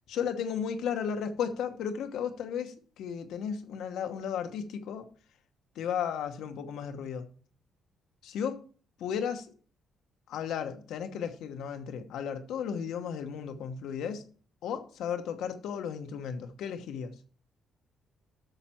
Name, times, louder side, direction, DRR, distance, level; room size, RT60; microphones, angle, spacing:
voice 1, 0.1-5.1 5.7-7.3 8.2-8.5 9.0-9.5 10.3-14.2 14.6-17.2, left 7 dB, 80° left, 7 dB, 1.1 m, -34 dB
9.1 x 6.7 x 4.4 m, 0.41 s
cardioid pair, 90°, 0 cm